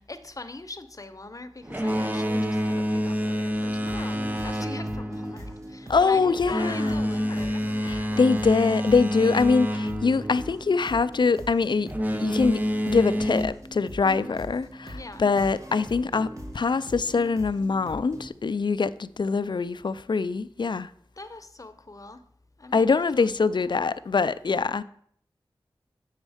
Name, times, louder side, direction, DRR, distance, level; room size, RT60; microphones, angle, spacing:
voice 1, 0.0-7.6 14.0-14.5 14.9-15.3 21.2-22.2 22.6-23.8, left 2 dB, 40° left, 0.8 m, -42 dB
Boat Water vehicle, 1.6-11.1 11.8-13.4, equal, 20° right, 0.8 m, -28 dB
sound 1, 3.5-18.3, equal, 35° right, 1.6 m, -42 dB
voice 2, 5.9-7.0 7.8-11.9 12.2-16.3 16.5-20.9 22.7-24.8, left 4 dB, 55° left, 0.4 m, -24 dB
7.3 x 6.2 x 5.0 m
cardioid pair, 45°, 9 cm